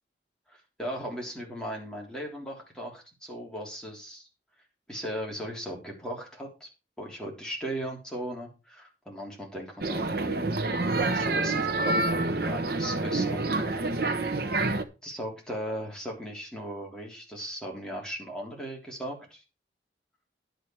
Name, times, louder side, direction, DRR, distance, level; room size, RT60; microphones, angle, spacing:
voice 1, 0.5-4.3 4.9-6.7 7.0-10.4 11.0-13.9 15.0-19.4, equal, 5° left, -2 dB, 3.4 m, -37 dB
sound 1, 9.8-14.8, right 2 dB, 55° right, 1.1 m, -27 dB
10.5 x 8.0 x 4.6 m, 0.29 s
head